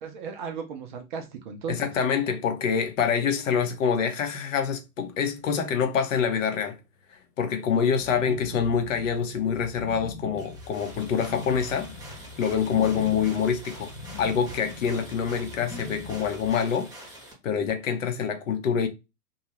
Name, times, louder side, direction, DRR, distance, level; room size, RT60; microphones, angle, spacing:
voice 1, 0.0-1.8 8.1-8.4, right 6 dB, 35° right, 0.5 m, -36 dB
voice 2, 1.7-6.8 7.4-11.9 12.4-13.9 14.2-16.9 17.4-18.9, left 7 dB, 55° left, 0.7 m, -26 dB
sound 1, 8.0-16.5, left 3 dB, 25° left, 0.4 m, -42 dB
sound 2, 10.4-17.3, right 1 dB, 10° right, 0.8 m, -46 dB
2.5 x 2.3 x 2.9 m
figure-of-eight pair, 110°, 46 cm